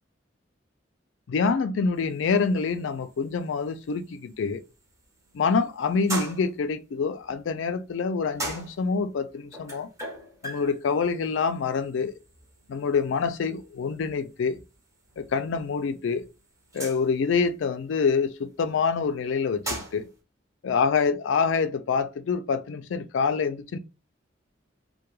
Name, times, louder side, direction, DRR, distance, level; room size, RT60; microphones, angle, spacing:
voice 1, 1.3-4.6 5.3-9.9 10.4-12.2 12.7-14.6 15.2-16.2 16.7-20.1 20.6-23.8, left 5 dB, 70° left, 0.3 m, -26 dB
sound 1, 2.0-20.2, right 2 dB, 15° right, 0.7 m, -42 dB
2.2 x 2.1 x 3.0 m
head